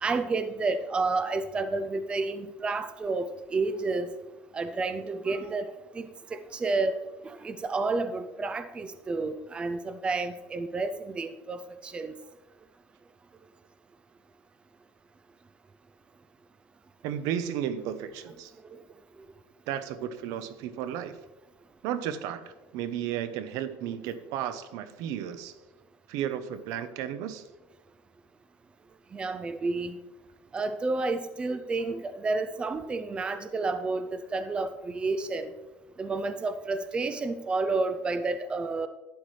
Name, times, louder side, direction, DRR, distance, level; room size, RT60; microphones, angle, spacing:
voice 1, 0.0-4.1 4.5-5.7 5.9-7.0 7.2-12.1 18.6-18.8 29.1-30.0 30.5-35.5 36.0-38.9, right 3 dB, 15° right, 11 dB, 0.4 m, -30 dB
voice 2, 17.0-18.5 19.7-21.2 21.8-25.5 26.1-27.4, right 10 dB, 65° right, 12 dB, 0.8 m, -33 dB
11.5 x 9.2 x 3.2 m, 1.1 s
cardioid pair, 145°, 6 cm